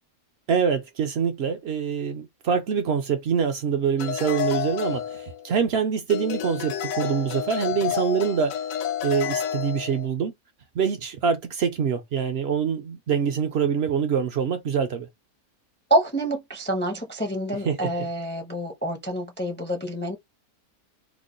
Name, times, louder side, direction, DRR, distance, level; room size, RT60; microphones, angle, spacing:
voice 1, 0.5-8.5 9.0-10.3 10.7-15.1 17.7-18.1, right 7 dB, 60° right, 0.7 m, -25 dB
sound 1, 4.0-5.7 6.1-10.1, left 9 dB, 75° left, 1.0 m, -30 dB
voice 2, 15.9-20.2, right 1 dB, 15° left, 0.4 m, -27 dB
3.0 x 2.2 x 3.7 m
omnidirectional pair, 1.5 m